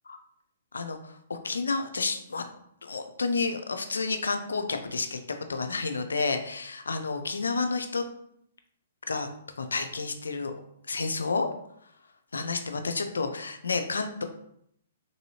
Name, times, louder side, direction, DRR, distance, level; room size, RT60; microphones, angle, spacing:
voice 1, 0.7-2.4 2.8-5.2 5.5-8.0 9.1-9.3 9.6-10.5 10.9-11.5 12.3-14.2, left 4 dB, 90° left, 7 dB, 0.4 m, -30 dB
3.3 x 2.7 x 2.7 m, 0.72 s
hypercardioid pair, 130°, 0 cm